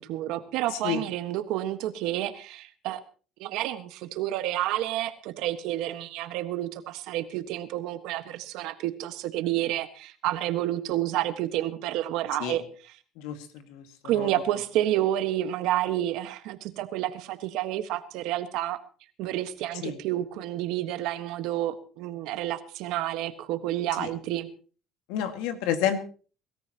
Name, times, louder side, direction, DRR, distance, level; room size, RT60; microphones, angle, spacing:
voice 1, 0.0-3.0 3.4-12.6 14.0-18.8 19.2-24.5, right 13 dB, 75° right, 10 dB, 1.5 m, -29 dB
voice 2, 0.7-1.0 12.4-12.6 13.2-14.4 19.8-20.0 24.0-24.1 25.1-26.0, left 9 dB, 85° left, 8 dB, 2.0 m, -30 dB
23.0 x 14.0 x 3.0 m, 0.39 s
supercardioid pair, 100°, 0 cm